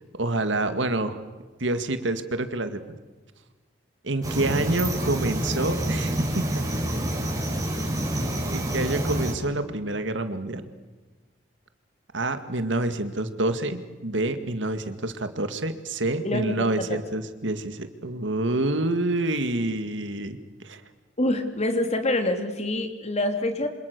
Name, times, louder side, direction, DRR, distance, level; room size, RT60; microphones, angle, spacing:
voice 1, 0.2-1.2 1.6-2.8 4.0-6.7 8.5-10.7 12.1-20.8, right 2 dB, 70° right, 9 dB, 2.1 m, -27 dB
sound 1, 4.2-9.3, right 1 dB, 20° right, 6.3 m, -27 dB
voice 2, 16.2-16.8 21.2-23.7, left 1 dB, 35° left, 6 dB, 3.0 m, -26 dB
27.5 x 26.5 x 6.8 m, 1.3 s
head